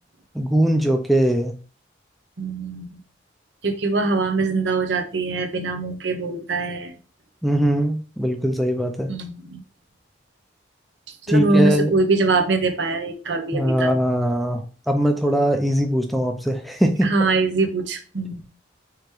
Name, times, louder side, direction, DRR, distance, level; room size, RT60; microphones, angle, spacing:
voice 1, 0.3-1.5 7.4-9.1 11.3-11.9 13.5-17.1, equal, ahead, 5 dB, 0.4 m, -21 dB
voice 2, 2.4-3.0 3.6-6.9 9.1-9.6 11.3-13.9 17.0-18.5, right 3 dB, 65° right, 6 dB, 0.8 m, -23 dB
4.9 x 3.4 x 3.0 m, 0.37 s
head